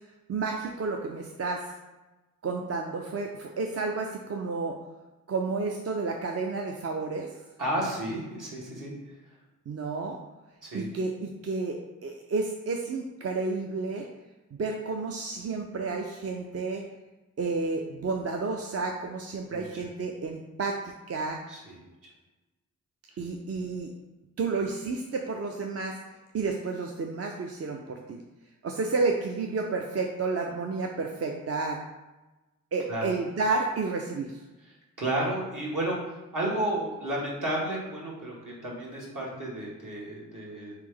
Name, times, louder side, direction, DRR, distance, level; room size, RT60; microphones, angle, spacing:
voice 1, 0.3-1.7 2.4-4.8 5.3-7.3 9.7-10.2 10.7-11.8 12.0-14.0 14.5-16.8 17.4-21.4 23.2-23.9 24.4-28.2 28.6-31.8 32.7-34.4, right 3 dB, 45° right, 1 dB, 0.5 m, -31 dB
voice 2, 7.6-8.9 10.6-10.9 19.5-19.7 21.5-21.8 32.9-33.1 35.0-36.0 36.3-40.7, right 1 dB, 65° right, -5 dB, 1.5 m, -32 dB
3.3 x 3.3 x 3.6 m, 1.1 s
cardioid pair, 55°, 34 cm